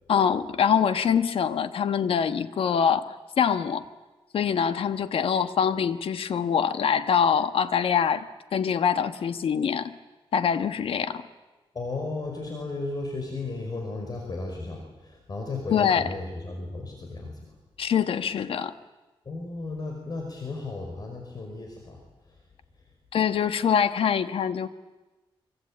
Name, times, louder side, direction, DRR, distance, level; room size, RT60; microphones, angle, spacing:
voice 1, 0.1-3.8 4.3-8.3 8.5-9.9 10.3-11.2 15.7-16.1 17.8-18.7 23.1-24.7, left 7 dB, 80° left, 11 dB, 1.4 m, -24 dB
voice 2, 11.7-17.5 19.3-22.0, left 3 dB, 45° left, 2 dB, 5.3 m, -34 dB
25.0 x 24.5 x 8.9 m, 1.1 s
wide cardioid pair, 105°, 9 cm